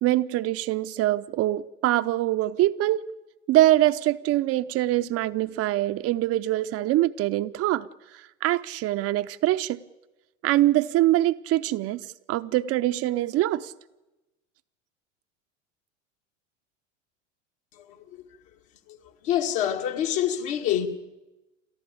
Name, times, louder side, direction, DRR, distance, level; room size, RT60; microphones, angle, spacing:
voice 1, 0.0-3.1 3.5-7.9 8.1-9.8 10.4-13.7, right 15 dB, 40° right, 0.7 m, -24 dB
voice 2, 19.2-20.9, left 10 dB, 55° left, 2.2 m, -25 dB
28.5 x 13.5 x 8.6 m
hypercardioid pair, 85°, 38 cm